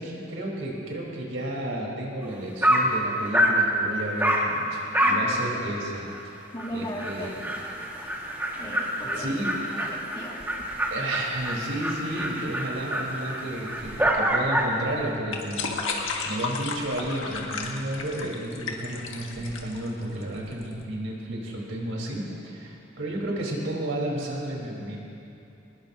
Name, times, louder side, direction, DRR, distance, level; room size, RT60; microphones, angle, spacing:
voice 1, 0.0-6.1 6.7-7.3 8.6-8.8 9.1-9.5 10.9-25.0, right 1 dB, 85° right, -2 dB, 3.5 m, -32 dB
Dog, 2.2-2.3 2.6-2.9 3.3-3.6 4.2-4.5 4.9-5.3 5.6-5.7 6.1-6.2 6.6-6.7 7.0-14.8, right 1 dB, 10° right, 1.5 m, -26 dB
voice 2, 5.0-5.5 6.5-7.4 8.6-9.4 9.7-10.6, equal, 25° left, -3 dB, 2.0 m, -37 dB
sound 1, 13.8-20.8, left 4 dB, 90° left, 1.6 m, -34 dB
23.0 x 20.5 x 2.6 m, 2.8 s
head